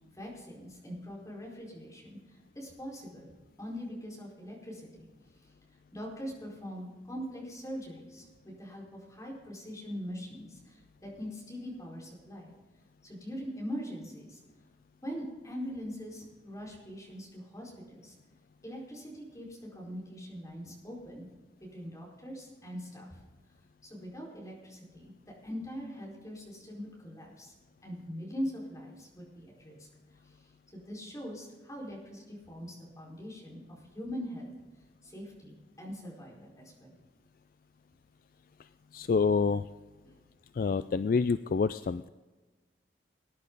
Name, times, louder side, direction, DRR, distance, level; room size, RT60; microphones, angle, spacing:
voice 1, 0.1-5.1 5.4-5.5 5.9-12.5 13.0-14.4 15.0-18.1 18.6-23.2 23.8-25.1 25.4-27.5 27.8-34.5 35.0-36.9 40.0-40.1, equal, 20° left, -3 dB, 4.7 m, -42 dB
voice 2, 38.9-39.7 40.5-42.1, left 5 dB, 50° left, 13 dB, 0.3 m, -27 dB
20.0 x 10.5 x 4.0 m, 1.3 s
head